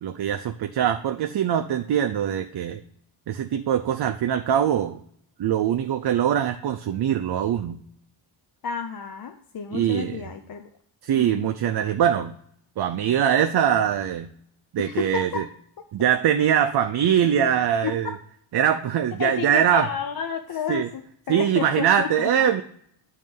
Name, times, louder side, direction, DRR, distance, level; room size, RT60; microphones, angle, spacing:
voice 1, 0.0-2.8 3.3-5.0 5.4-7.8 9.7-10.2 11.0-12.3 12.8-14.3 14.7-15.4 15.9-18.1 18.5-19.9 20.7-20.9 21.3-22.6, right 9 dB, 60° right, 7 dB, 0.5 m, -22 dB
voice 2, 8.6-10.6 11.1-11.5 14.8-15.4 17.4-17.5 17.8-18.1 19.2-22.6, left 7 dB, 50° left, 5 dB, 0.6 m, -31 dB
9.4 x 3.2 x 5.2 m, 0.65 s
wide cardioid pair, 110°, 45 cm